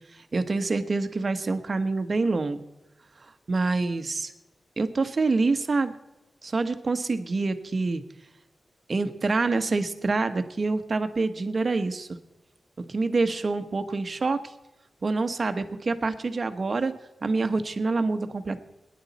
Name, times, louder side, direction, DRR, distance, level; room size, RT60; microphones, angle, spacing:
voice 1, 0.3-2.6 3.5-4.3 4.8-5.9 6.4-8.0 8.9-12.2 12.9-14.4 15.0-16.9 17.2-18.6, right 3 dB, 50° right, 9 dB, 1.1 m, -26 dB
18.5 x 10.5 x 4.2 m, 0.97 s
cardioid pair, 60°, 0 cm